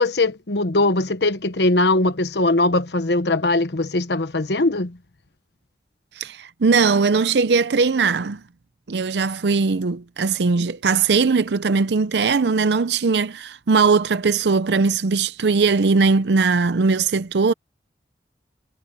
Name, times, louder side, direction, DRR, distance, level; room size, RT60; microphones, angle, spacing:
voice 1, 0.0-5.0, left 2 dB, 80° left, 1.2 m, -20 dB
voice 2, 6.2-8.4 8.9-17.5, right 4 dB, 80° right, 0.6 m, -19 dB
head